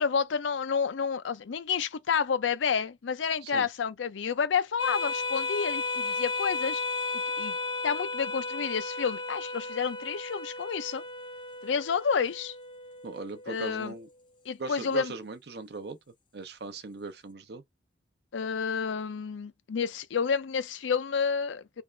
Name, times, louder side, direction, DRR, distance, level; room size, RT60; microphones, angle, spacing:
voice 1, 0.0-6.8 7.1-7.6 7.8-11.0 11.6-12.6 13.5-13.9 14.5-15.1 18.3-21.8, left 6 dB, 85° left, 0.5 m, -30 dB
sound 1, 4.8-13.7, left 3 dB, 25° left, 0.6 m, -34 dB
voice 2, 13.0-14.1 14.6-16.0 16.3-17.6, right 3 dB, 65° right, 0.6 m, -39 dB
3.4 x 2.5 x 3.2 m
head